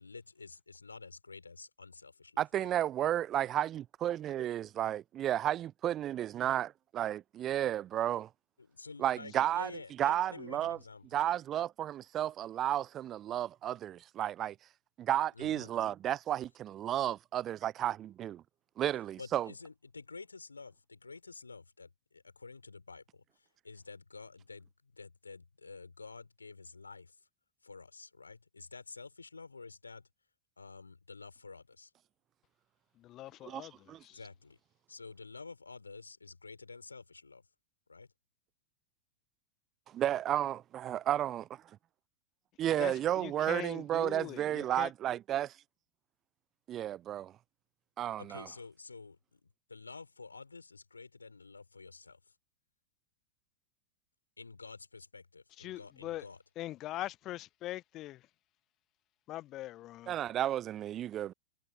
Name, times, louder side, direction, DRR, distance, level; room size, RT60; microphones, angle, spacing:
voice 1, 0.0-2.7 8.6-11.2 15.3-15.7 19.2-27.2 27.6-30.1 30.6-31.9 34.1-34.6 34.9-37.4 37.9-38.1 48.2-52.3 54.4-56.4, left 4 dB, 80° left, 6.4 m, -50 dB
voice 2, 2.4-8.3 9.0-9.7 10.0-10.8 11.1-14.6 15.0-18.4 18.8-19.5 33.5-33.6 33.9-34.0 39.9-41.6 42.6-45.5 46.7-47.3 48.0-48.5 60.1-61.3, right 11 dB, 30° right, 0.5 m, -32 dB
voice 3, 32.9-34.2 42.8-44.9 55.6-56.3 56.6-58.2 59.3-60.2, left 15 dB, 35° left, 1.3 m, -42 dB
figure-of-eight pair, 90°, 0 cm